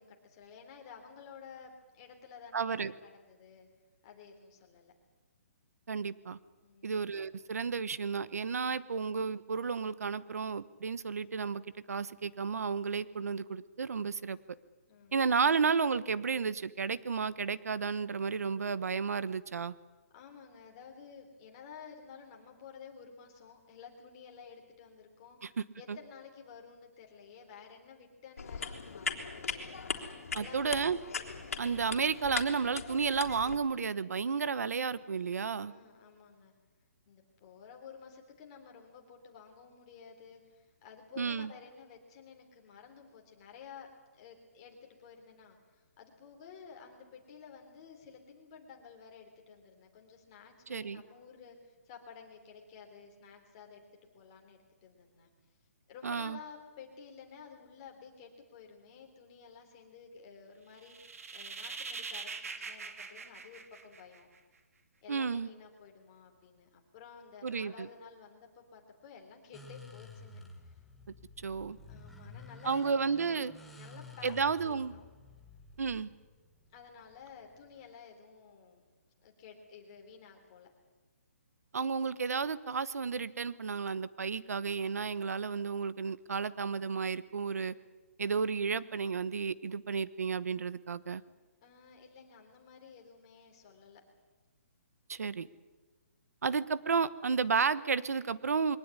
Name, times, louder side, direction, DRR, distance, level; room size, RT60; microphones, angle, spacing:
voice 1, 0.0-3.7 4.0-4.9 6.6-7.0 14.9-15.4 20.1-31.0 35.6-36.5 37.1-53.9 54.1-55.3 55.9-64.3 65.0-70.7 71.9-73.5 73.7-75.1 76.7-78.8 79.2-80.7 91.6-94.0, left 6 dB, 25° left, 2 dB, 3.5 m, -53 dB
voice 2, 2.5-2.9 5.9-6.4 6.8-11.6 11.9-14.4 15.1-19.7 25.9-26.0 30.3-31.0 31.6-35.7 41.2-41.5 50.7-51.0 56.0-56.4 65.1-65.5 67.4-67.9 71.4-71.8 72.6-73.5 74.2-74.9 75.8-76.1 81.7-87.7 88.2-91.2 95.1-95.5 96.4-98.8, right 5 dB, 90° right, 17 dB, 1.1 m, -32 dB
sound 1, 28.4-33.6, left 5 dB, 65° left, 3.4 m, -39 dB
sound 2, 60.8-64.4, right 4 dB, 70° right, 2.8 m, -43 dB
sound 3, 69.5-77.9, left 2 dB, ahead, 1.2 m, -52 dB
22.5 x 18.5 x 9.7 m, 1.3 s
hypercardioid pair, 175°, 8 cm